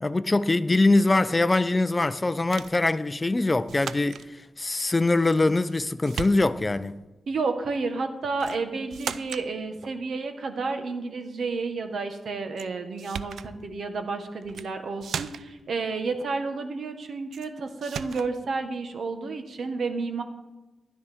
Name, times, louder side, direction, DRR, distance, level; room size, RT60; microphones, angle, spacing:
voice 1, 0.0-7.0, left 2 dB, 20° left, 0.4 m, -23 dB
sound 1, 2.5-2.8 3.7-4.3 5.3-5.8 6.1-6.8 8.4-8.6 8.9-9.5 12.6-12.7 13.0-13.5 14.4-14.7 15.0-15.6 17.3-17.5 17.8-18.3, right 7 dB, 85° right, 0.4 m, -36 dB
voice 2, 7.3-20.2, right 4 dB, 65° right, 1.2 m, -31 dB
12.5 x 11.0 x 3.6 m
wide cardioid pair, 110°, 0 cm